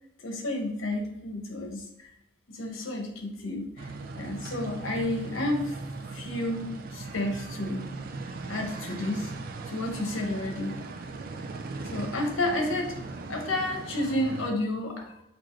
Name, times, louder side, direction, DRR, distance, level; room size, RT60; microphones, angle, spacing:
voice 1, 0.2-2.1 2.5-3.9 4.2-5.7 6.1-7.9 8.5-9.3 9.7-10.8 11.9-12.9 13.3-15.2, left 1 dB, 75° left, 3 dB, 0.9 m, -31 dB
sound 1, 3.8-14.5, right 3 dB, 45° right, 0.4 m, -39 dB
6.0 x 2.5 x 3.1 m, 0.84 s
head